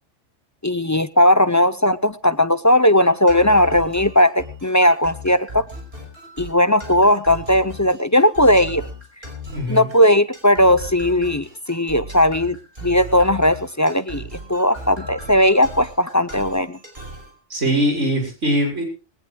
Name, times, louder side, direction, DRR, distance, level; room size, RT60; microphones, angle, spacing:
voice 1, 0.6-5.6 6.4-8.9 9.7-12.6 12.8-14.2 14.5-16.8, left 1 dB, 20° left, 13 dB, 0.5 m, -17 dB
sound 1, 3.3-17.3, equal, 55° right, 5.7 m, -37 dB
voice 2, 9.5-9.9 17.5-18.8, equal, 70° right, 2 dB, 7.0 m, -21 dB
21.5 x 19.5 x 2.3 m, 0.32 s
omnidirectional pair, 1.3 m